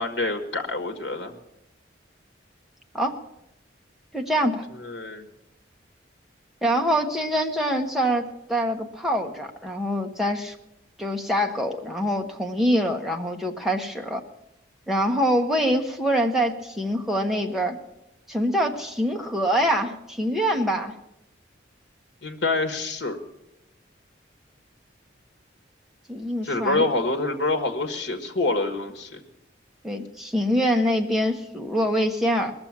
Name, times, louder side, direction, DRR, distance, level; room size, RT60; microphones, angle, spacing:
voice 1, 0.0-1.3 4.8-5.3 22.2-23.2 26.4-29.2, left 2 dB, 65° left, 6 dB, 1.5 m, -26 dB
voice 2, 4.1-4.7 6.6-10.6 11.0-14.2 14.9-17.8 18.3-20.9 26.1-26.9 29.8-32.5, equal, ahead, 2 dB, 1.1 m, -24 dB
21.0 x 7.0 x 7.3 m, 0.86 s
head